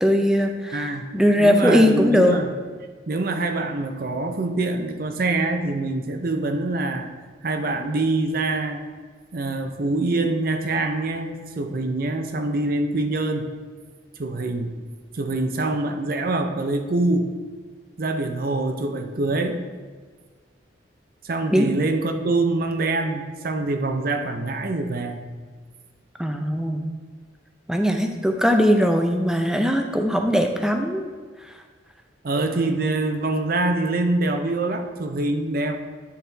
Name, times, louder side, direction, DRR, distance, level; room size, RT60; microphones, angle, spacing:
voice 1, 0.0-2.4 21.5-21.7 26.2-26.9 27.7-31.1, equal, 5° right, 4 dB, 0.5 m, -20 dB
voice 2, 0.7-1.1 1.4-2.5 3.1-7.1 7.4-8.8 9.3-13.5 14.2-14.8 15.1-17.3 18.0-19.7 21.2-25.3 32.2-35.8, right 2 dB, 50° right, 6 dB, 0.6 m, -25 dB
9.4 x 4.1 x 4.0 m, 1.5 s
head